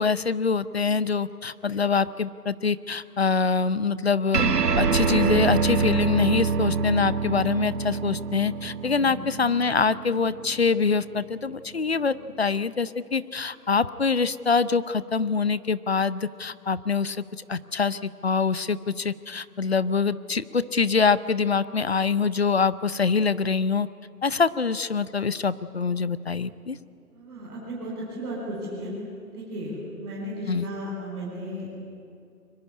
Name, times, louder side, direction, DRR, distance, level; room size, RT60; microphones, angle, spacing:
voice 1, 0.0-17.2 17.5-23.9 24.2-26.8 30.5-30.7, left 5 dB, 45° left, 17 dB, 0.6 m, -25 dB
sound 1, 4.3-11.1, right 5 dB, 90° right, 1.6 m, -26 dB
voice 2, 27.1-28.9 29.3-31.7, equal, 10° right, -10 dB, 4.9 m, -35 dB
23.5 x 21.0 x 9.7 m, 2.5 s
hypercardioid pair, 170°, 46 cm